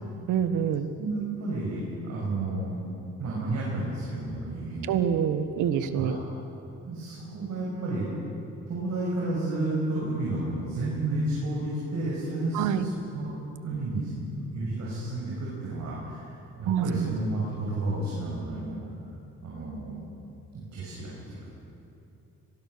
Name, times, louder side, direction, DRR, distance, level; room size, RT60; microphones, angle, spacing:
voice 1, 0.3-0.9 4.9-6.2 12.5-12.9 16.7-17.2, right 8 dB, 90° right, 10 dB, 1.4 m, -26 dB
voice 2, 1.0-2.8 3.2-4.9 5.9-6.1 6.8-8.3 8.7-13.3 13.6-14.1 14.5-18.8 19.4-19.9 20.5-21.5, right 2 dB, 65° right, -6 dB, 6.5 m, -31 dB
23.5 x 20.0 x 6.8 m, 2.7 s
cardioid pair, 90°, 30 cm